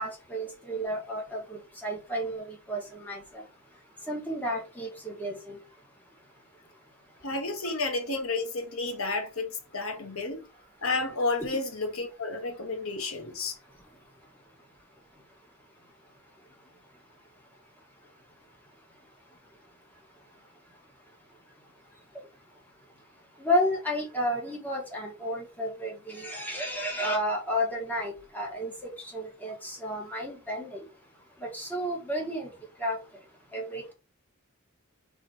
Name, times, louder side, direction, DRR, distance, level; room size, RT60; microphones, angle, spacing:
voice 1, 0.0-3.2 4.1-5.6 23.4-30.8 31.4-32.5 32.8-33.0 33.5-33.9, equal, 10° left, 2.0 m, -32 dB
voice 2, 7.2-10.4 10.8-13.6, left 3 dB, 80° left, 1.5 m, -31 dB
4.8 x 4.4 x 4.6 m
head